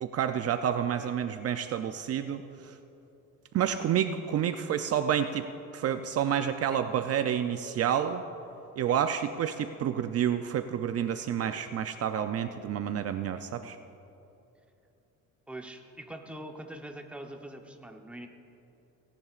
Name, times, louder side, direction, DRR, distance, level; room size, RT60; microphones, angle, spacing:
voice 1, 0.0-2.7 3.5-8.2 8.8-13.8, right 9 dB, 50° right, 8 dB, 0.5 m, -29 dB
voice 2, 15.5-18.3, right 1 dB, 5° right, 3 dB, 0.8 m, -43 dB
17.5 x 17.0 x 2.4 m, 2.9 s
cardioid pair, 145°, 32 cm